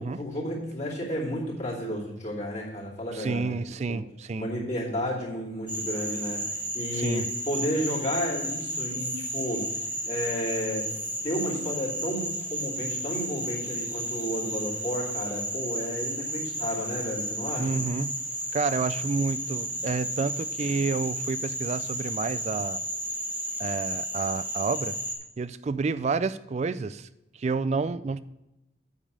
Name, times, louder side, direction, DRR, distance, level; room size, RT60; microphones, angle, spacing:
voice 1, 0.0-4.0 4.3-6.4 6.7-9.8 10.1-10.9 11.2-17.7, equal, 40° left, -6 dB, 2.7 m, -32 dB
voice 2, 3.1-4.5 6.9-7.3 17.6-18.2 18.5-22.8 23.6-24.9 25.4-27.1 27.4-28.2, right 4 dB, 40° right, 15 dB, 0.3 m, -29 dB
Frog, 5.7-25.2, equal, 10° right, 1.3 m, -33 dB
8.5 x 5.4 x 6.5 m, 0.93 s
head